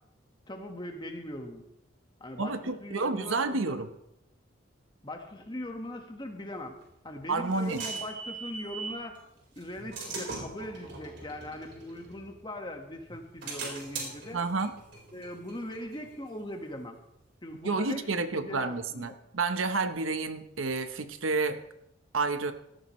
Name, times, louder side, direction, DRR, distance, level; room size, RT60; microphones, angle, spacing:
voice 1, 0.5-1.6 2.2-3.8 5.0-6.8 7.0-9.2 9.5-14.4 15.1-17.0 17.4-19.1, left 1 dB, 25° left, 4 dB, 1.5 m, -40 dB
voice 2, 2.4-3.9 7.3-7.8 14.3-14.7 17.6-21.6 22.1-22.5, right 3 dB, 85° right, 9 dB, 1.0 m, -30 dB
sound 1, 6.8-9.0 9.6-12.7 13.1-16.5, right 4 dB, 60° right, 4.5 m, -41 dB
17.5 x 13.5 x 3.2 m, 0.81 s
head